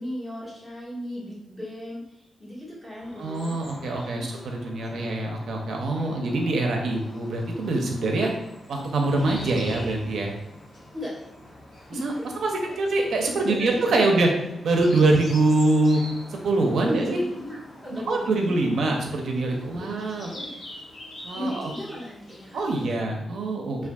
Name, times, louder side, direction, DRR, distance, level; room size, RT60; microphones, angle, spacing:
voice 1, 0.0-3.5 4.1-4.3 4.9-5.0 5.9-6.3 10.9-11.2 11.9-12.8 13.5-13.7 16.8-18.8 19.4-19.9 20.1-20.5 21.3-23.1 23.7-23.9, equal, 15° left, -8 dB, 1.3 m, -37 dB
sound 1, 3.0-22.9, left 1 dB, 85° left, 0.8 m, -44 dB
voice 2, 3.2-8.3 8.7-10.3 12.0-12.1 12.4-12.5 12.8-14.3 14.6-16.0 16.3-17.2 17.9-20.3 21.2-21.7 22.5-23.9, right 2 dB, 75° right, 2 dB, 0.4 m, -24 dB
3.4 x 2.2 x 2.2 m, 0.81 s
cardioid pair, 105°, 0 cm